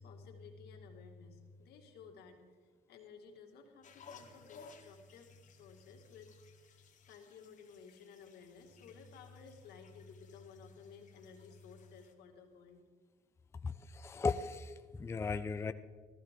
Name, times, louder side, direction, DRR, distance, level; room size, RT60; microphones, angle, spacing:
voice 1, 0.0-2.4 2.9-12.8, left 5 dB, 70° left, 2 dB, 2.0 m, -55 dB
sound 1, 3.8-12.1, left 5 dB, 50° left, 1.4 m, -60 dB
voice 2, 13.6-15.7, left 4 dB, 15° left, 11 dB, 0.4 m, -36 dB
14.5 x 14.5 x 3.7 m, 1.5 s
cardioid pair, 110°, 17 cm